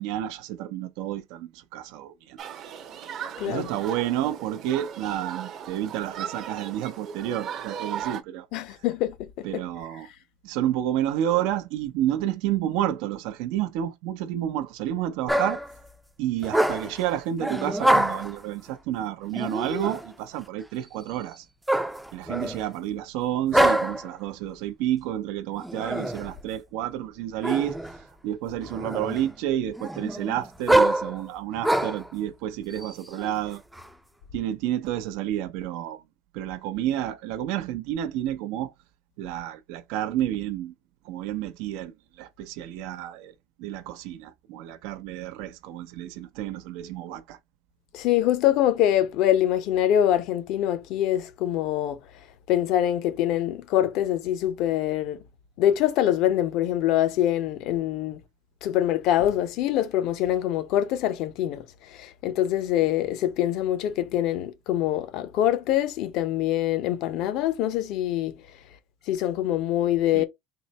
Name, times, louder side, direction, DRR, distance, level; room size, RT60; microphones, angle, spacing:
voice 1, 0.0-2.4 3.5-8.5 9.4-10.1 10.4-15.6 16.2-21.5 22.1-27.8 28.2-33.6 34.3-36.0 36.3-38.7 39.2-40.7 41.0-43.3 43.6-47.4 70.1-70.2, right 11 dB, 80° right, 0.6 m, -30 dB
Human group actions, 2.4-8.2, right 8 dB, 50° right, 0.8 m, -37 dB
voice 2, 3.4-3.7 8.5-9.6 47.9-52.0 52.5-55.2 55.6-58.2 58.6-68.3 69.1-70.2, left 12 dB, 65° left, 0.7 m, -24 dB
sound 1, 15.3-15.7 16.4-17.0 17.4-18.4 19.3-20.1 21.7-22.7 23.5-24.1 25.6-26.3 27.4-28.0 28.5-29.3 29.8-32.1 32.8-33.9, right 1 dB, 5° right, 0.4 m, -25 dB
3.8 x 2.1 x 4.0 m
cardioid pair, 125°, 0 cm